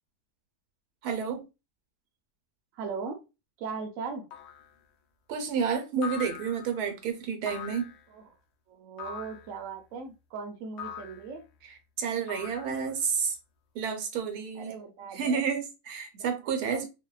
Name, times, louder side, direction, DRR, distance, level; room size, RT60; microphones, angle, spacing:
voice 1, 1.0-1.5 5.3-7.9 11.6-13.4 13.7-14.8 15.1-16.9, right 6 dB, 80° right, 1.1 m, -30 dB
voice 2, 2.8-3.2 3.6-4.3 8.1-8.2 8.7-11.4 14.5-15.4 16.1-16.2 16.6-16.9, right 5 dB, 65° right, 0.9 m, -38 dB
sound 1, 4.3-4.7 6.0-6.8 7.5-8.0 9.0-9.5 10.8-11.3 12.3-13.0, left 7 dB, 70° left, 0.6 m, -41 dB
2.6 x 2.1 x 2.3 m
omnidirectional pair, 1.6 m